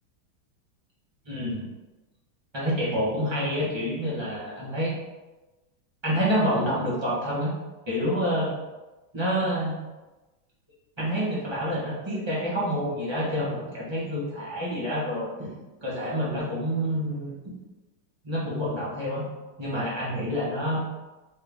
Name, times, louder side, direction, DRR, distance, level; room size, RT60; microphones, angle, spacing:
voice 1, 1.2-1.6 2.5-5.0 6.0-7.5 7.9-8.5 9.1-9.8 11.0-15.5 15.8-17.4 18.2-19.3 19.6-20.8, equal, 25° right, -7 dB, 0.6 m, -28 dB
4.4 x 2.6 x 3.4 m, 1.1 s
omnidirectional pair, 2.3 m